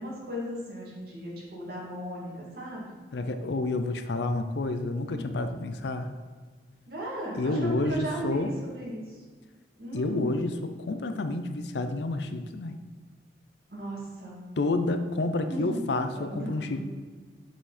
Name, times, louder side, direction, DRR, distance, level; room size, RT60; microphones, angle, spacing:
voice 1, 0.0-2.9 5.1-5.2 6.9-9.2 9.8-10.3 13.7-14.5 15.5-15.8 16.1-16.8, right 1 dB, 60° right, -5 dB, 2.5 m, -36 dB
voice 2, 3.1-6.1 7.3-8.5 9.9-10.6 10.9-12.8 14.6-16.8, left 2 dB, 75° left, 8 dB, 0.5 m, -29 dB
7.1 x 6.2 x 4.2 m, 1.5 s
head